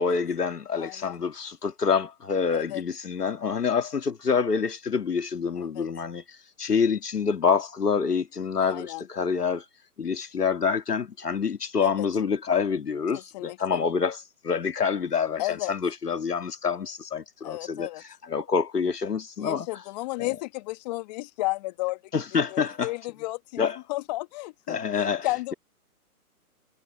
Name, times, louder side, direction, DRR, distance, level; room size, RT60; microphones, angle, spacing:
voice 1, 0.0-6.2 6.6-9.6 10.0-14.2 14.4-15.4 15.7-17.9 18.3-19.7 20.2-20.3 22.1-22.9 23.6-23.8 24.7-25.3, left 6 dB, 80° left, 2.0 m, -26 dB
voice 2, 0.8-1.2 2.5-2.8 5.6-5.9 8.6-9.1 11.8-12.1 13.1-13.9 15.4-15.7 17.4-18.0 19.4-25.5, left 21 dB, 25° left, 1.9 m, -33 dB
hypercardioid pair, 140°, 46 cm